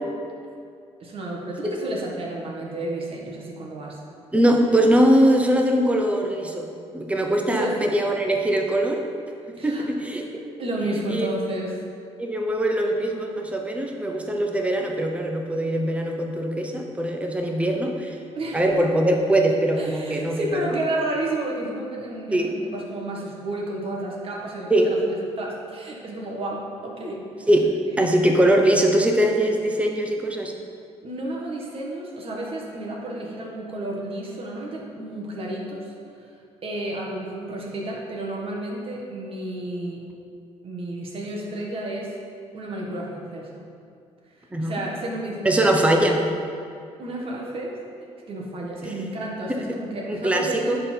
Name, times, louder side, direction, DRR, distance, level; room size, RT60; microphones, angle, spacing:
voice 1, 1.0-4.0 7.5-7.8 9.6-9.9 10.6-11.8 18.3-18.7 19.8-27.3 28.0-28.1 31.0-35.9 36.2-36.3 36.6-40.1 40.6-42.2 42.5-43.6 44.3-45.7 47.0-47.8 48.3-50.8, right 1 dB, 50° right, -2 dB, 1.7 m, -31 dB
voice 2, 4.3-6.7 6.9-9.0 9.6-10.3 11.1-11.3 12.2-18.2 18.5-20.5 22.3-22.5 24.7-24.9 27.5-27.7 28.0-30.5 44.5-44.7 45.4-46.3 48.8-48.9 50.1-50.8, right 1 dB, 10° right, 2 dB, 0.9 m, -21 dB
10.5 x 4.1 x 4.5 m, 2.4 s
cardioid pair, 90°, 12 cm